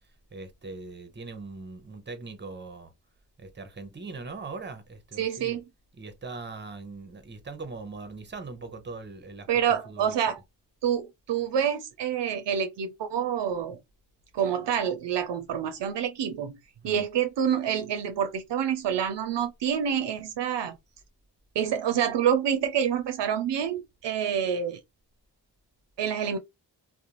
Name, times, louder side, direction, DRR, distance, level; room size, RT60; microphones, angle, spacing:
voice 1, 0.3-2.9 3.4-5.6 6.0-10.1 16.8-17.1, right 3 dB, 25° right, 0.7 m, -41 dB
voice 2, 5.2-5.6 9.5-10.4 10.8-13.8 14.3-16.6 16.8-20.8 21.6-24.8 26.0-26.4, right 8 dB, 75° right, 0.5 m, -27 dB
2.5 x 2.1 x 2.9 m
cardioid pair, 45°, 43 cm